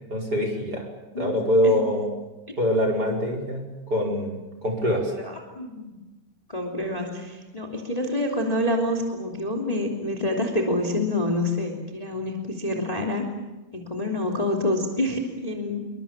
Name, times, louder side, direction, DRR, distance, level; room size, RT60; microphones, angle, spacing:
voice 1, 0.1-0.9 1.2-2.1 2.6-5.1, left 1 dB, 30° right, 3 dB, 5.3 m, -24 dB
voice 2, 5.1-6.0 6.5-13.2 13.7-15.8, left 1 dB, 10° left, 2 dB, 2.9 m, -27 dB
28.0 x 23.5 x 7.3 m, 1.1 s
omnidirectional pair, 3.3 m